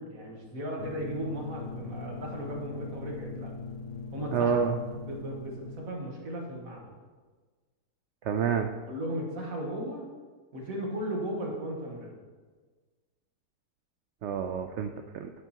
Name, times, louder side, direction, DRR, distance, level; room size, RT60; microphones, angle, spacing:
voice 1, 0.0-3.5 4.1-4.6 4.9-7.0 8.9-10.0 10.5-12.2, right 1 dB, 60° right, -1 dB, 1.8 m, -36 dB
sound 1, 0.8-6.2, left 4 dB, 60° left, 0.9 m, -41 dB
voice 2, 4.3-4.8 8.2-8.7 14.2-15.3, right 7 dB, 80° right, 6 dB, 0.6 m, -28 dB
9.3 x 9.0 x 2.9 m, 1.4 s
omnidirectional pair, 1.7 m